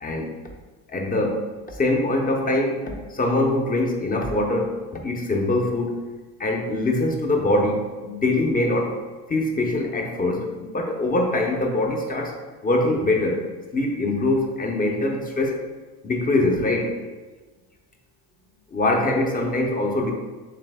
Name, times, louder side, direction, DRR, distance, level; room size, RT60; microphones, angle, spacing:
voice 1, 0.9-6.0 6.4-8.9 9.3-12.3 12.6-13.4 13.7-15.7 16.0-16.9 18.7-20.1, left 2 dB, 20° left, 2 dB, 0.7 m, -23 dB
3.3 x 3.3 x 3.5 m, 1.3 s
hypercardioid pair, 70°, 48 cm